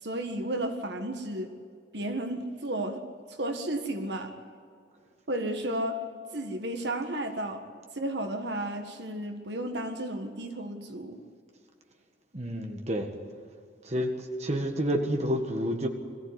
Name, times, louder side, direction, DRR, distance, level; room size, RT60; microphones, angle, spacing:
voice 1, 0.0-1.6 1.9-3.0 3.3-4.3 5.3-6.0 6.3-7.6 7.9-11.2, right 1 dB, 65° right, 6 dB, 1.7 m, -33 dB
voice 2, 12.3-13.1 13.9-14.1 14.4-15.9, equal, 35° right, 4 dB, 1.8 m, -29 dB
22.0 x 15.0 x 9.6 m, 2.2 s
head